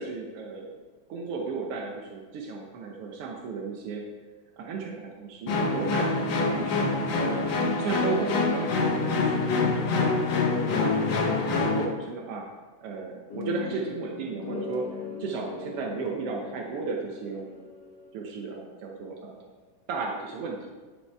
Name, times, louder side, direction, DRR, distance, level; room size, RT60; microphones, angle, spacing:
voice 1, 0.0-0.8 1.1-4.1 4.6-7.4 7.8-9.9 10.3-12.5 12.8-14.9 15.2-17.5 18.1-19.4 19.9-20.7, right 4 dB, 75° right, 0 dB, 1.3 m, -34 dB
sound 1, 5.5-11.9, left 3 dB, 85° left, 1.0 m, -25 dB
sound 2, 13.3-18.4, left 5 dB, 40° left, 2.3 m, -40 dB
11.0 x 6.9 x 4.6 m, 1.4 s
omnidirectional pair, 3.7 m